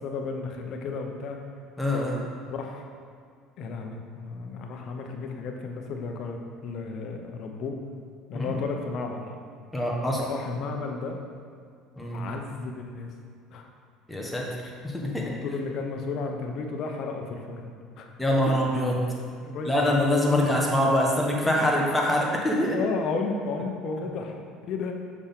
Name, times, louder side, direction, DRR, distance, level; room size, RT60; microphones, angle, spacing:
voice 1, 0.0-1.4 2.5-2.9 3.6-7.8 8.3-9.2 10.1-11.2 12.1-13.1 13.5-13.7 15.1-17.7 18.0-18.1 18.5-18.6 19.4-20.0 20.3-20.5 21.7-21.8 22.7-24.4 24.7-25.0, left 4 dB, 55° left, 3 dB, 0.9 m, -33 dB
voice 2, 1.8-2.2 8.3-8.6 9.7-10.2 12.0-12.2 14.1-14.4 14.8-15.2 18.2-19.0 19.6-22.8, left 1 dB, 5° left, -2 dB, 1.4 m, -24 dB
6.3 x 5.9 x 3.8 m, 2.2 s
supercardioid pair, 90°, 0 cm